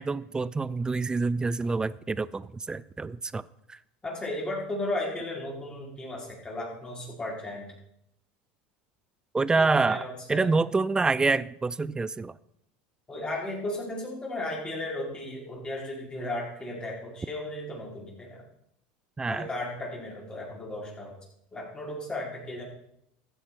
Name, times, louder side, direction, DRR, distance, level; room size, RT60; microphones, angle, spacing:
voice 1, 0.0-3.4 3.7-3.8 9.3-12.4 19.2-19.5, right 3 dB, 15° right, 19 dB, 0.5 m, -27 dB
voice 2, 4.0-7.7 9.5-10.5 13.1-18.4 19.3-21.1 21.5-22.6, left 1 dB, 20° left, -3 dB, 4.8 m, -35 dB
14.5 x 7.9 x 4.7 m, 0.77 s
supercardioid pair, 95°, 5 cm